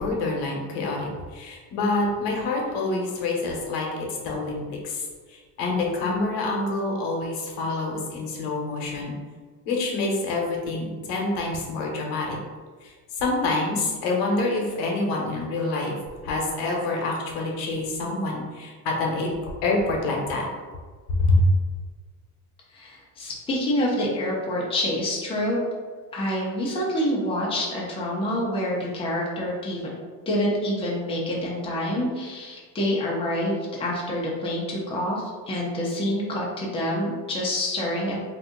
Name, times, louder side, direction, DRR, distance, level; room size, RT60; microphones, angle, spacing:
voice 1, 0.0-9.1 9.7-12.4 12.8-15.9 16.2-20.5 21.1-21.5, left 2 dB, 85° left, -1 dB, 0.9 m, -27 dB
voice 2, 22.7-25.6 26.1-29.8 30.3-38.2, left 1 dB, 15° left, -4 dB, 0.6 m, -27 dB
2.7 x 2.5 x 3.7 m, 1.5 s
cardioid pair, 150°, 38 cm